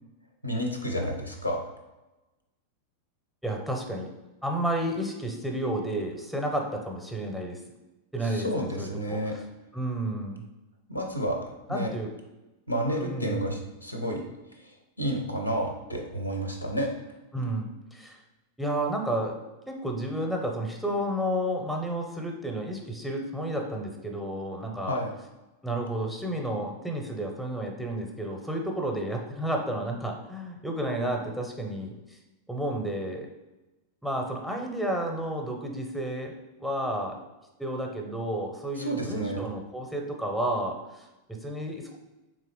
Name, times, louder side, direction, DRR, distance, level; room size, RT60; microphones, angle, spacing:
voice 1, 0.4-1.7 8.2-9.4 10.9-11.9 12.7-14.3 14.6-16.9 24.8-25.1 38.8-39.4, equal, 90° left, 2 dB, 0.5 m, -31 dB
voice 2, 3.4-4.1 4.4-7.6 8.1-9.4 9.7-10.4 11.7-12.1 12.9-13.5 17.3-18.2 18.6-19.4 19.7-25.0 25.6-32.2 32.5-33.3 34.0-36.3 36.6-37.2 37.6-42.0, right 1 dB, ahead, 2 dB, 0.6 m, -31 dB
3.7 x 3.0 x 3.0 m, 1.0 s
figure-of-eight pair, 90°, 0 cm